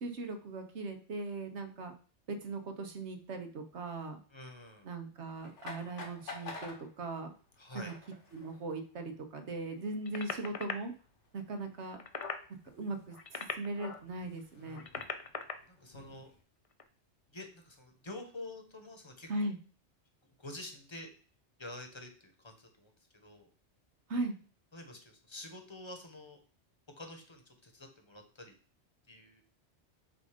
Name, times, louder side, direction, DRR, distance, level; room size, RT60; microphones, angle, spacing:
voice 1, 0.0-1.9 2.3-4.2 4.8-7.3 7.7-7.9 8.3-10.9 11.3-12.0 12.7-14.8 19.3-19.6 24.1-24.3, right 2 dB, 70° right, 6 dB, 1.2 m, -39 dB
voice 2, 4.3-4.9 7.6-7.9 14.6-15.1 15.7-16.3 17.3-19.5 20.4-21.1 21.6-23.5 24.7-26.4 27.0-28.5 29.1-29.4, left 2 dB, 25° left, 4 dB, 1.0 m, -48 dB
sound 1, 5.3-16.4, left 3 dB, 85° left, 1.6 m, -52 dB
sound 2, 10.0-10.7 11.8-12.4 13.1-14.0 14.7-15.5 16.7-16.9, left 5 dB, 45° left, 0.4 m, -39 dB
7.4 x 2.6 x 5.0 m, 0.40 s
omnidirectional pair, 1.2 m